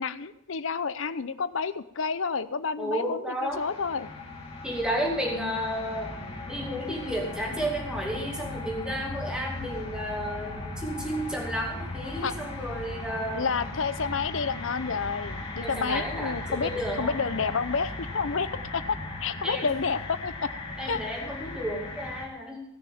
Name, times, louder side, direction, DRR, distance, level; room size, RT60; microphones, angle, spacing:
voice 1, 0.0-4.1 5.3-5.5 12.2-12.3 13.3-16.7 17.0-18.8 19.2-20.5 20.8-21.0, left 5 dB, 65° left, 14 dB, 0.7 m, -30 dB
voice 2, 2.8-3.6 4.6-6.1 6.5-13.5 15.6-17.1 19.4-19.7 20.8-22.6, equal, 5° right, -1 dB, 2.3 m, -32 dB
sound 1, 3.5-22.3, left 2 dB, 30° left, 2.5 m, -37 dB
17.0 x 6.6 x 7.2 m, 0.79 s
head